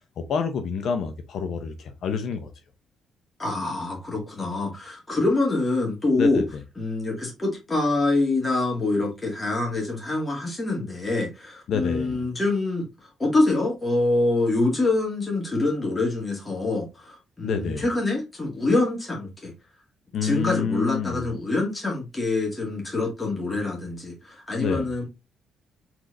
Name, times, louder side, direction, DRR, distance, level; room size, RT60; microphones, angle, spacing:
voice 1, 0.2-2.5 6.2-6.4 11.7-12.2 17.4-17.8 20.1-21.3 24.6-24.9, left 6 dB, 70° left, 0.6 m, -28 dB
voice 2, 3.4-6.4 6.8-19.5 20.2-25.0, left 2 dB, 20° left, 2.1 m, -25 dB
4.4 x 4.0 x 2.6 m
cardioid pair, 90°, 0 cm